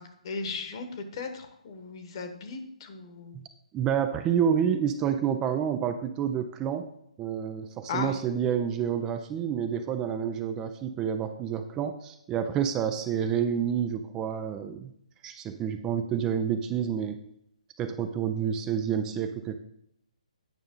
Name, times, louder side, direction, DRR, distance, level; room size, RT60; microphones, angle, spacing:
voice 1, 0.0-3.4 7.9-8.1, left 4 dB, 45° left, 7 dB, 1.2 m, -36 dB
voice 2, 3.7-6.9 7.2-14.9 15.2-17.2 17.8-19.6, right 8 dB, 15° right, 8 dB, 0.4 m, -29 dB
9.1 x 5.4 x 3.7 m, 0.73 s
hypercardioid pair, 150°, 4 cm